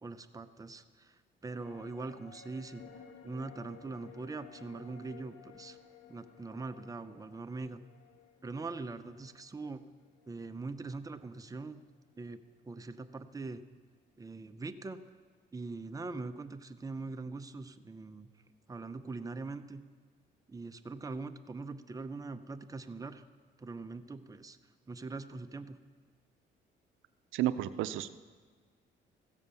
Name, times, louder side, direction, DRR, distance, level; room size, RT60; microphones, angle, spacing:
voice 1, 0.0-2.8 3.2-5.8 6.1-7.8 8.4-9.8 10.3-11.8 12.2-12.4 12.6-13.6 14.2-15.0 15.5-18.3 18.7-19.8 20.5-23.2 23.6-24.6 24.9-25.8, right 3 dB, 15° right, 9 dB, 0.6 m, -42 dB
sound 1, 1.6-11.1 11.4-11.5, left 7 dB, 65° left, 1.4 m, -56 dB
voice 2, 27.3-28.1, right 13 dB, 85° right, 13 dB, 0.5 m, -31 dB
15.5 x 7.2 x 6.7 m, 1.5 s
cardioid pair, 90°, 20 cm